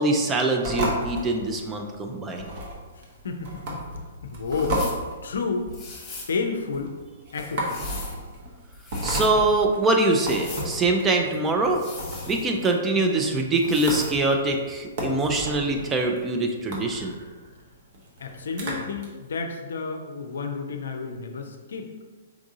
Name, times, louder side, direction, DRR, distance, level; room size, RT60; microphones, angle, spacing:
voice 1, 0.0-2.5 9.0-11.8 12.3-17.2, right 2 dB, 15° right, 3 dB, 0.5 m, -23 dB
sound 1, 0.6-19.1, equal, 45° right, 1.0 m, -34 dB
voice 2, 2.9-3.8 4.2-4.8 5.2-5.7 6.3-7.0 7.3-7.7 18.2-21.9, left 4 dB, 65° left, 4 dB, 0.5 m, -31 dB
sound 2, 4.5-5.0 5.7-6.4 7.3-8.2 8.7-9.3 10.1-10.7 11.7-12.7 13.6-14.2, left 3 dB, 15° left, 1.0 m, -40 dB
4.7 x 3.5 x 2.6 m, 1.3 s
figure-of-eight pair, 115°, 0 cm